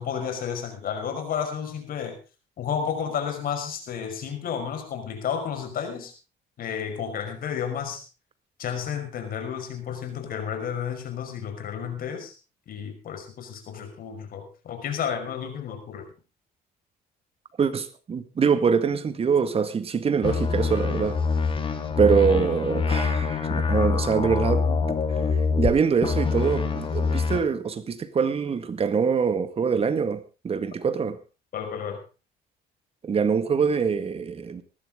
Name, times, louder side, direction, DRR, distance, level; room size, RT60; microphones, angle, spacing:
voice 1, 0.0-2.2 2.6-6.1 6.6-8.0 8.6-12.3 12.7-16.0 31.5-32.0, left 7 dB, 60° left, 5.6 m, -31 dB
voice 2, 17.6-21.2 22.0-24.8 25.1-25.2 25.6-30.2 30.4-31.2 33.0-34.6, right 6 dB, 35° right, 1.9 m, -24 dB
sound 1, 20.2-25.7 26.0-27.4, left 5 dB, 30° left, 3.3 m, -25 dB
19.0 x 14.0 x 3.8 m
cardioid pair, 110°, 17 cm